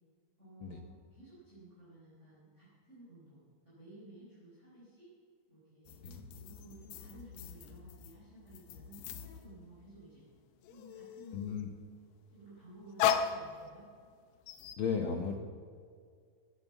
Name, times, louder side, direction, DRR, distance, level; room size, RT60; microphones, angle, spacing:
voice 1, 0.4-5.1 5.5-6.0 6.3-10.2 10.7-11.5 12.3-13.9, right 1 dB, 20° right, -10 dB, 4.8 m, -55 dB
sound 1, 5.9-10.1 10.4-11.6 12.4-14.1 14.5-14.8, left 8 dB, 85° left, 2.5 m, -38 dB
voice 2, 11.3-11.7 14.8-15.3, left 6 dB, 70° left, 3 dB, 1.2 m, -35 dB
17.0 x 9.4 x 7.1 m, 2.1 s
omnidirectional pair, 3.7 m